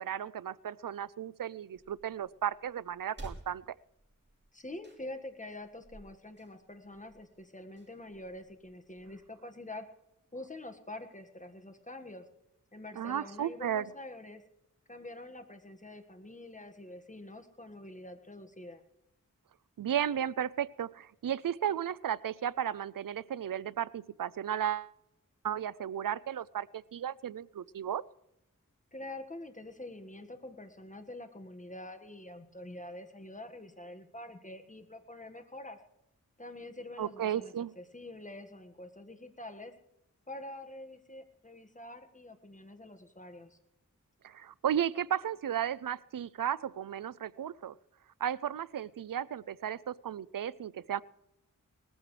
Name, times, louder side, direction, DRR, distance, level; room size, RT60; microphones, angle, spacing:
voice 1, 0.0-3.7 13.0-13.9 19.8-24.9 25.4-28.0 37.0-37.7 44.2-47.8 48.2-51.0, right 9 dB, 80° right, 20 dB, 0.5 m, -34 dB
sound 1, 1.7-9.2, right 1 dB, 35° right, 3.0 m, -54 dB
voice 2, 4.5-9.9 10.3-12.3 12.7-14.4 14.9-18.8 28.9-35.8 36.4-39.7 40.3-43.6, left 1 dB, 25° left, 6 dB, 1.7 m, -46 dB
20.0 x 15.0 x 3.3 m, 0.86 s
wide cardioid pair, 50°, 33 cm